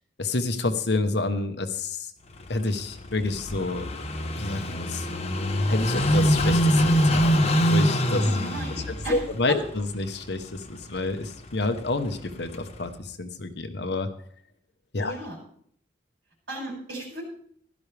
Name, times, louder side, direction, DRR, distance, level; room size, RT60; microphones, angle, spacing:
voice 1, 0.2-2.1 2.5-3.9 4.4-5.1 5.7-8.3 8.9-14.1 14.9-15.1, left 2 dB, 60° left, 8 dB, 1.1 m, -29 dB
Car passing by / Idling, 2.3-12.9, equal, 35° left, 1.1 m, -26 dB
voice 2, 8.1-9.2 9.5-9.6 15.0-15.4 16.5-17.2, equal, 85° right, -2 dB, 6.4 m, -35 dB
15.5 x 12.0 x 3.4 m, 0.64 s
head